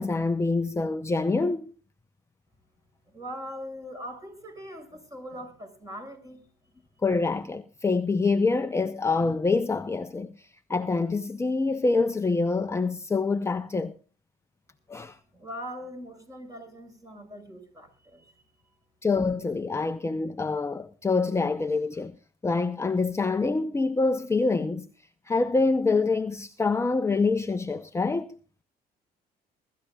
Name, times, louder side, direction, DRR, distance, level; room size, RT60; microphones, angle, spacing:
voice 1, 0.0-1.7 7.0-14.0 14.9-15.2 19.0-22.1 22.4-24.9 25.2-28.4, left 3 dB, 15° left, 0.7 m, -26 dB
voice 2, 3.1-6.4 15.3-18.3, equal, 20° right, 6.3 m, -41 dB
22.5 x 13.5 x 2.4 m
cardioid pair, 110°, 17 cm